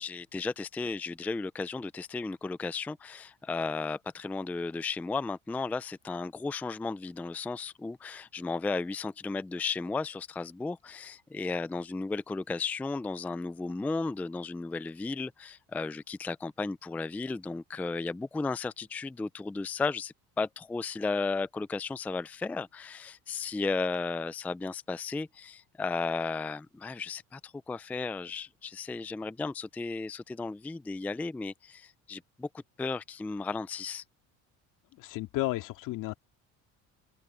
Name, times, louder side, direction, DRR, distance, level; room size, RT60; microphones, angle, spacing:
voice 1, 0.0-32.5 32.8-34.0, left 4 dB, 5° left, 0.3 m, -34 dB
voice 2, 35.0-36.1, left 18 dB, 75° left, 2.4 m, -32 dB
cardioid pair, 115°, 32 cm